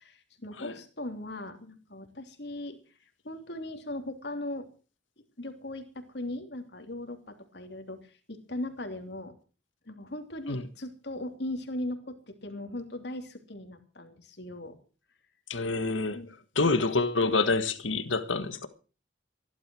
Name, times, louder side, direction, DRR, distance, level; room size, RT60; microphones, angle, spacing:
voice 1, 0.0-2.8 3.2-4.7 5.4-9.3 9.9-14.8 16.1-16.3, left 1 dB, 60° left, 3.0 m, -39 dB
voice 2, 15.5-16.2 16.6-18.7, left 3 dB, 80° left, 1.8 m, -27 dB
16.0 x 12.0 x 6.2 m
head